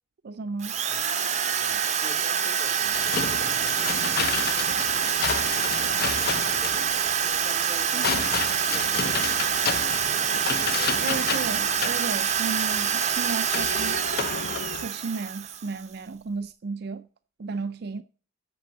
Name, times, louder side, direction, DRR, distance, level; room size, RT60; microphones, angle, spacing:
voice 1, 0.2-0.8 7.9-8.3 11.0-14.0 14.8-17.1 17.4-18.0, right 4 dB, 50° right, 0.4 m, -34 dB
Drill, 0.6-15.8, right 8 dB, 35° right, 0.8 m, -26 dB
voice 2, 1.6-4.5 5.7-9.3 9.8-11.0 12.7-13.0, right 1 dB, 5° right, 3.8 m, -47 dB
sound 1, 2.9-14.9, left 6 dB, 50° left, 0.5 m, -31 dB
7.6 x 6.8 x 8.0 m
head